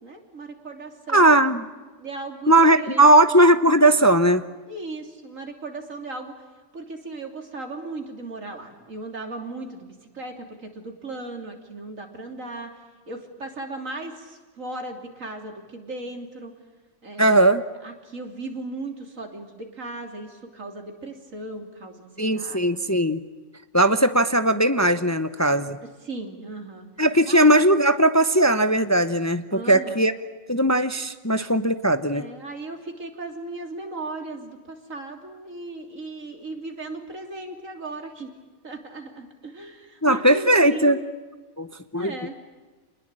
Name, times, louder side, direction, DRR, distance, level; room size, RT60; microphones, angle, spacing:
voice 1, 0.0-1.3 2.0-3.1 4.7-6.4 6.7-12.8 13.1-16.5 17.0-17.4 17.8-23.0 25.8-26.9 27.3-27.4 29.5-30.0 32.1-38.3 38.6-41.0 41.9-42.4, right 2 dB, 85° right, 4 dB, 3.6 m, -37 dB
voice 2, 1.1-1.6 2.5-4.4 17.2-17.6 22.2-23.2 23.7-25.8 27.0-30.1 30.5-32.3 40.0-41.0 41.6-42.2, right 1 dB, 15° left, 11 dB, 0.8 m, -18 dB
28.0 x 20.5 x 8.8 m, 1.3 s
omnidirectional pair, 1.3 m